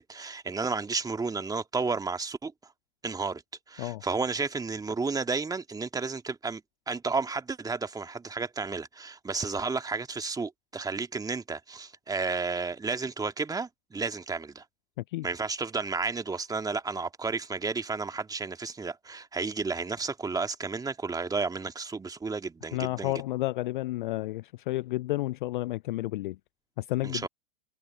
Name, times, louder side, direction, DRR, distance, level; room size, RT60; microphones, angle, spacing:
voice 1, 0.0-2.5 3.0-3.4 3.7-6.6 6.9-14.6 15.2-23.1 27.0-27.3, right 4 dB, 10° right, 2.3 m, -32 dB
voice 2, 22.7-26.4 26.8-27.3, left 17 dB, 40° left, 0.5 m, -31 dB
figure-of-eight pair, 100°, 40 cm